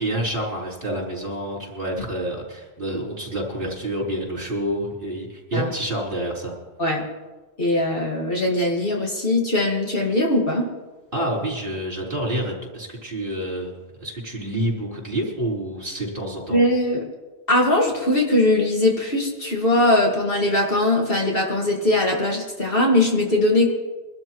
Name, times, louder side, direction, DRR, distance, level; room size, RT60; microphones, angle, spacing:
voice 1, 0.0-6.5 11.1-13.7 14.0-16.6, right 1 dB, 50° right, -5 dB, 4.7 m, -28 dB
voice 2, 7.6-10.7 16.5-17.1 17.5-23.7, left 1 dB, 55° left, -1 dB, 2.3 m, -20 dB
23.5 x 12.5 x 3.1 m, 1.2 s
omnidirectional pair, 1.2 m